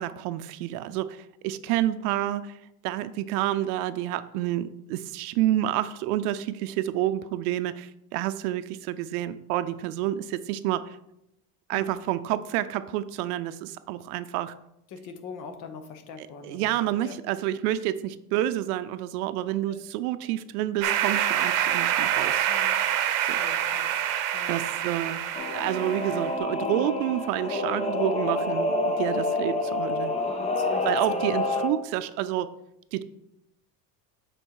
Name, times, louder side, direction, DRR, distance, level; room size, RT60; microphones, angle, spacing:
voice 1, 0.0-2.6 2.8-11.0 11.7-14.5 16.2-22.5 24.5-25.2 25.5-30.1 30.8-32.5 32.9-33.0, right 13 dB, 90° right, 12 dB, 0.6 m, -29 dB
voice 2, 14.9-16.7 17.0-17.2 19.7-19.8 22.5-22.7 23.2-23.9 24.3-24.5 26.7-27.0 30.3-31.7, left 5 dB, 45° left, 7 dB, 1.0 m, -42 dB
sound 1, 20.8-26.3, right 10 dB, 60° right, 0.9 m, -26 dB
Singing / Musical instrument, 25.3-31.7, left 2 dB, 15° left, 0.5 m, -28 dB
7.7 x 4.4 x 4.7 m, 0.83 s
cardioid pair, 150°, 44 cm